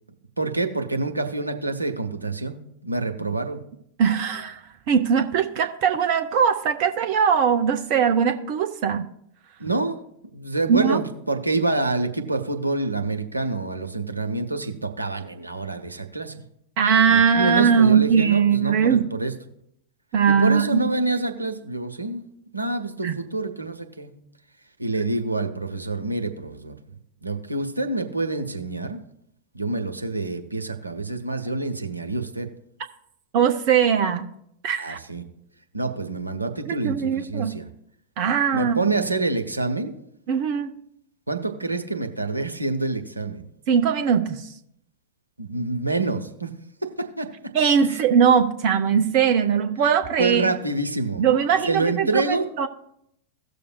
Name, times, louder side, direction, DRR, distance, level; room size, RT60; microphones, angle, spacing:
voice 1, 0.4-3.6 9.6-10.0 10.3-16.4 17.1-19.3 20.3-22.3 22.5-24.1 24.8-26.8 27.2-29.0 29.5-32.5 34.8-35.2 35.7-37.7 38.5-39.9 41.3-43.4 45.4-46.5 46.8-47.3 47.8-48.0 50.2-51.3 51.6-52.5, right 2 dB, 85° right, 5 dB, 0.8 m, -27 dB
voice 2, 4.0-9.1 10.7-11.0 16.8-19.1 20.1-20.8 23.0-23.2 33.3-34.3 34.6-35.0 36.7-37.5 38.2-38.9 40.3-40.7 43.7-44.5 47.5-50.5 51.2-52.7, right 7 dB, 45° right, 8 dB, 0.6 m, -20 dB
17.0 x 6.8 x 2.2 m, 0.73 s
figure-of-eight pair, 90°, 0 cm